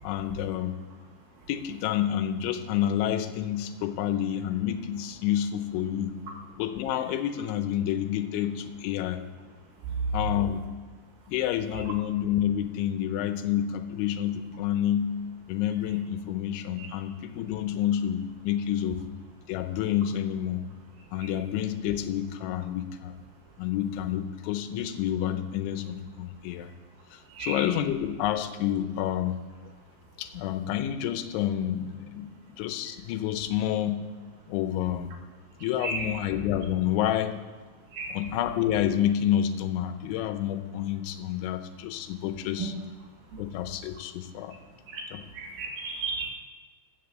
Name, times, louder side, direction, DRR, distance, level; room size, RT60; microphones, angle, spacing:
voice 1, 0.0-0.8 1.5-6.2 6.6-9.2 10.1-10.6 11.3-15.1 15.5-19.0 19.5-20.6 21.1-23.1 23.6-26.7 27.1-29.4 30.2-32.3 32.6-34.0 34.5-35.1 35.6-37.3 38.1-42.7 43.4-44.5 45.1-45.2, left 11 dB, 85° left, 8 dB, 3.1 m, -29 dB
voice 2, 27.3-27.6 35.8-36.1 37.9-38.2 43.3-43.4 44.9-46.3, right 3 dB, 70° right, 2 dB, 2.6 m, -35 dB
14.0 x 6.8 x 7.9 m, 1.4 s
omnidirectional pair, 5.4 m